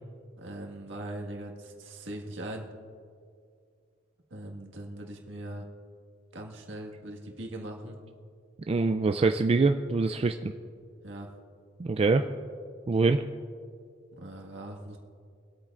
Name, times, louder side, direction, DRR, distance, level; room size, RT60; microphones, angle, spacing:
voice 1, 0.4-2.7 4.3-5.7 6.3-8.0 11.0-11.3 14.1-15.0, right 1 dB, 70° right, 1 dB, 1.8 m, -40 dB
voice 2, 8.7-10.5 11.8-12.3 12.9-13.2, right 3 dB, 30° right, 6 dB, 0.3 m, -24 dB
24.5 x 8.7 x 2.5 m, 2.2 s
head